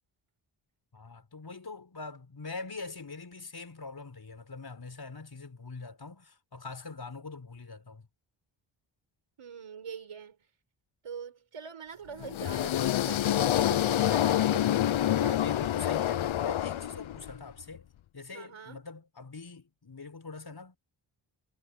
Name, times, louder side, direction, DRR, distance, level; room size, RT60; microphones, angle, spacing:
voice 1, 0.9-8.1 15.0-17.9 18.1-20.8, left 3 dB, 50° left, 5.1 m, -43 dB
voice 2, 9.4-10.4 11.0-14.7 15.1-15.4 18.3-18.8, right 7 dB, 80° right, 5.9 m, -44 dB
sound 1, 12.2-17.4, left 12 dB, 70° left, 0.8 m, -27 dB
cardioid pair, 60°, 50 cm